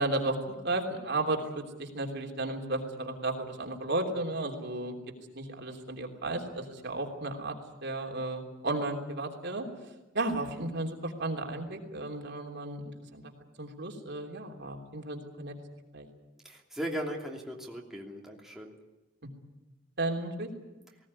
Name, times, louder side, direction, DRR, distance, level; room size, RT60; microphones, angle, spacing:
voice 1, 0.0-4.9 5.3-9.7 10.1-13.2 13.6-15.5 15.9-16.1 20.0-20.5, right 2 dB, 60° right, 2 dB, 3.2 m, -34 dB
voice 2, 16.4-18.7, equal, ahead, -1 dB, 2.9 m, -38 dB
19.0 x 18.0 x 9.8 m, 1.1 s
head